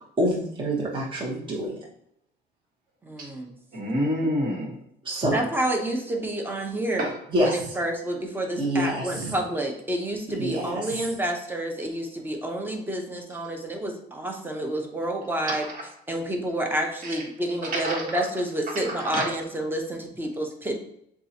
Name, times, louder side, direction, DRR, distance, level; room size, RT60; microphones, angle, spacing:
voice 1, 0.2-1.8 5.0-5.3 7.3-7.7 8.6-9.3 10.3-11.1, equal, 30° right, -4 dB, 1.1 m, -27 dB
voice 2, 3.0-3.6 4.2-4.3 5.3-7.1 7.4-15.7 16.1-20.8, right 1 dB, 10° right, 3 dB, 0.8 m, -29 dB
voice 3, 3.7-4.8 7.0-7.1 15.5-15.9 17.0-17.2 17.6-18.0 18.7-19.3, right 1 dB, 50° right, -2 dB, 1.5 m, -28 dB
7.2 x 2.4 x 2.9 m, 0.72 s
cardioid pair, 110°, 17 cm